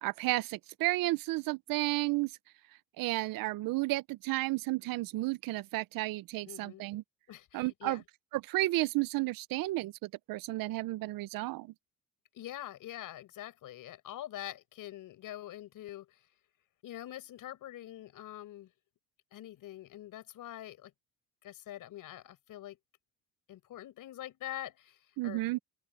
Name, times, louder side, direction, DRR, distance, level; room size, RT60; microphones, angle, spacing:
voice 1, 0.0-2.3 3.0-7.0 7.5-8.0 8.3-11.7 25.2-25.6, right 19 dB, 75° right, 0.8 m, -32 dB
voice 2, 6.5-6.8 7.3-8.0 12.3-16.2 16.8-18.7 19.3-20.9 21.4-22.8 23.5-25.6, left 13 dB, 70° left, 5.3 m, -45 dB
open air
cardioid pair, 90°, 34 cm